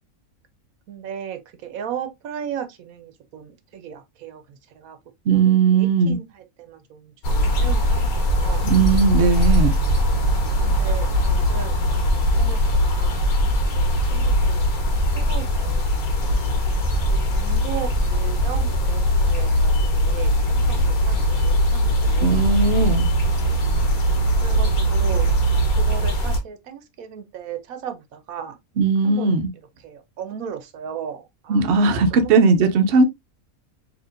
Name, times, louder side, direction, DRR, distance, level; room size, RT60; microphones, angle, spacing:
voice 1, 0.9-5.0 5.3-8.7 10.6-13.1 13.5-16.4 16.9-20.8 21.1-22.6 24.4-25.3 25.8-28.6 29.0-29.3 29.8-32.3, right 8 dB, 80° right, 1.1 m, -36 dB
voice 2, 5.3-6.2 8.6-9.8 22.2-23.1 28.8-29.5 31.5-33.0, right 4 dB, 60° right, 0.8 m, -18 dB
sound 1, 7.2-26.4, equal, 80° left, 1.4 m, -20 dB
4.4 x 2.8 x 2.5 m
omnidirectional pair, 1.5 m